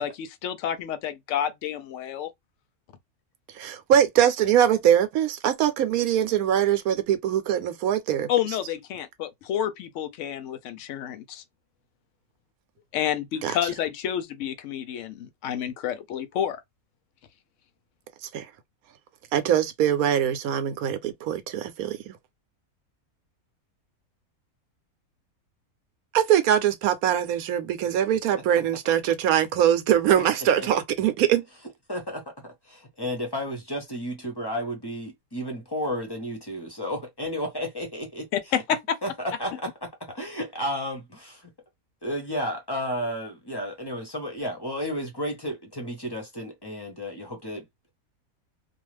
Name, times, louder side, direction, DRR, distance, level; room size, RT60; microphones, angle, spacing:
voice 1, 0.0-2.3 8.3-11.4 12.9-16.6 38.3-39.0, left 10 dB, 65° left, 0.8 m, -29 dB
voice 2, 3.5-8.3 13.4-13.6 18.3-18.5 19.3-22.1 26.1-31.4, right 10 dB, 75° right, 1.1 m, -22 dB
voice 3, 30.1-30.7 31.9-38.3 39.0-41.5 42.0-47.9, equal, 25° left, 0.6 m, -32 dB
2.5 x 2.3 x 3.1 m
omnidirectional pair, 1.6 m